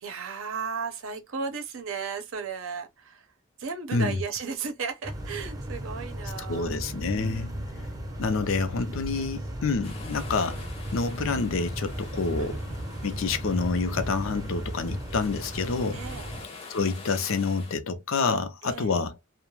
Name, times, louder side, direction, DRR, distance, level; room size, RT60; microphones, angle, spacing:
voice 1, 0.0-3.3 3.6-6.7 7.0-7.7 8.3-8.5 9.1-9.3 12.4-12.6 15.9-16.3 18.6-19.0, right 5 dB, 75° right, 0.6 m, -35 dB
voice 2, 3.9-4.2 6.5-7.5 8.2-10.6 10.9-12.6 13.0-16.0 16.7-19.2, left 4 dB, 75° left, 0.5 m, -28 dB
sound 1, 5.0-16.4, equal, 15° right, 0.6 m, -36 dB
sound 2, 9.8-17.8, left 4 dB, 30° left, 0.6 m, -46 dB
2.3 x 2.1 x 3.1 m
head